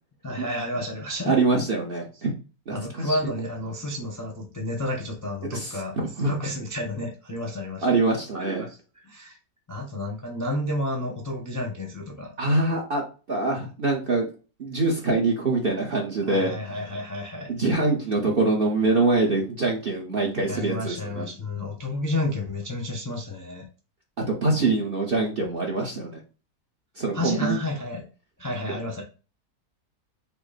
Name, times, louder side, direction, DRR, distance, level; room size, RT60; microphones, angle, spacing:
voice 1, 0.2-1.4 2.7-5.9 6.2-7.9 8.3-8.7 9.0-9.4 9.7-12.3 16.2-17.5 20.5-23.6 27.1-28.0 28.4-29.0, left 1 dB, 15° left, -1 dB, 0.6 m, -31 dB
voice 2, 1.2-2.3 2.7-3.2 5.5-6.3 7.8-8.6 12.4-14.3 14.6-16.5 17.5-21.3 24.2-26.2 26.9-27.6, right 3 dB, 45° right, 0 dB, 0.8 m, -24 dB
5.9 x 2.1 x 4.0 m, 0.34 s
omnidirectional pair, 1.8 m